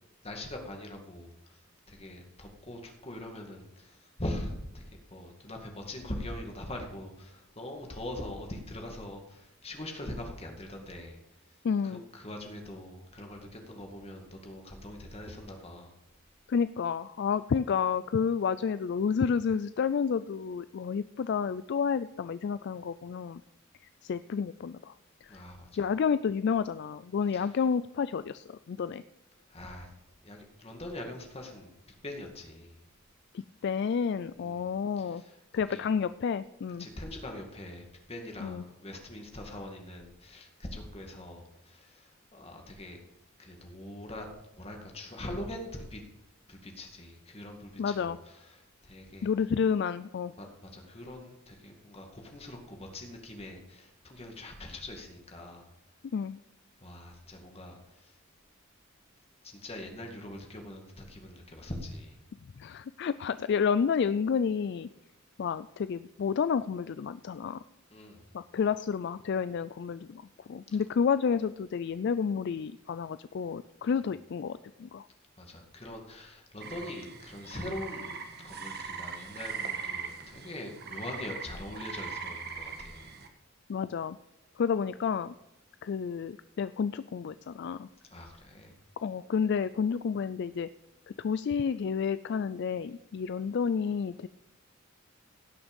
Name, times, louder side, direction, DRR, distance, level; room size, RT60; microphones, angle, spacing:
voice 1, 0.2-1.6 1.9-11.2 11.5-11.6 11.8-15.9 25.3-25.7 27.3-27.5 29.5-29.9 30.2-31.7 32.0-32.8 34.4-34.7 35.0-35.4 35.7-35.9 36.8-43.0 43.4-44.3 44.5-46.0 46.5-49.3 50.4-55.7 56.8-58.2 59.4-62.2 67.9-68.3 73.8-73.9 75.4-83.2 88.1-88.7, left 1 dB, 30° left, 2 dB, 2.1 m, -42 dB
voice 2, 11.6-12.0 16.5-23.4 23.8-24.9 25.2-25.4 25.8-29.0 33.6-35.2 35.5-36.9 38.4-38.6 47.8-48.2 49.2-50.3 56.1-56.4 62.6-64.9 65.4-67.6 68.3-75.1 83.7-84.2 84.6-85.4 85.8-87.9 89.0-90.7 91.2-94.3, left 6 dB, 55° left, 14 dB, 0.3 m, -30 dB
sound 1, 76.6-83.3, right 5 dB, 50° right, 1.4 m, -40 dB
17.0 x 6.2 x 5.3 m, 0.91 s
head